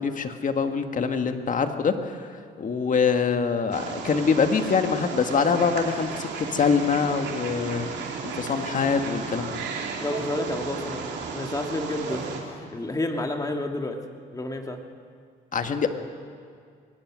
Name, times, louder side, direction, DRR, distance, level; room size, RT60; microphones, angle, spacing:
voice 1, 0.0-2.3 2.6-9.6 15.5-15.9, left 5 dB, 45° left, 7 dB, 1.7 m, -24 dB
Wild animals, 3.7-12.4, right 5 dB, 75° right, 3.1 m, -34 dB
voice 2, 10.0-14.0 14.3-14.8, left 2 dB, 20° left, 3 dB, 2.2 m, -30 dB
23.0 x 19.0 x 6.3 m, 2.2 s
cardioid pair, 85°, 18 cm